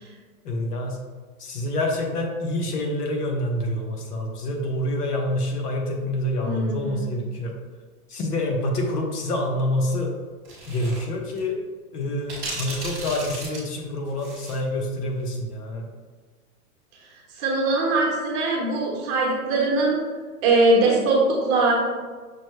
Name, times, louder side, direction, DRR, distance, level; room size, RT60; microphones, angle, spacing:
voice 1, 0.4-1.0 1.4-7.5 8.1-10.1 10.7-11.6 11.9-15.9, left 1 dB, 80° left, 1 dB, 1.0 m, -27 dB
voice 2, 6.4-7.1 17.4-20.0 20.4-21.7, right 2 dB, 25° right, -3 dB, 1.0 m, -21 dB
sound 1, 10.4-11.0 11.3-11.4 12.3-14.6, right 2 dB, 5° right, 0.4 m, -35 dB
6.2 x 2.1 x 3.1 m, 1.4 s
hypercardioid pair, 150°, 46 cm